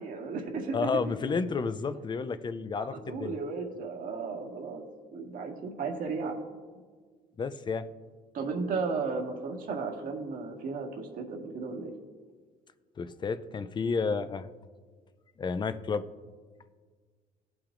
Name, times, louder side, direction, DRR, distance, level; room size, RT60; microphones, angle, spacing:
voice 1, 0.0-0.8 2.8-4.8 5.1-6.4 8.3-11.9, right 4 dB, 55° right, 1 dB, 1.7 m, -34 dB
voice 2, 0.7-3.4 7.4-7.9 13.0-14.5 15.4-16.1, left 5 dB, 25° left, 12 dB, 0.5 m, -31 dB
17.5 x 5.9 x 2.5 m, 1.5 s
cardioid pair, 110°, 17 cm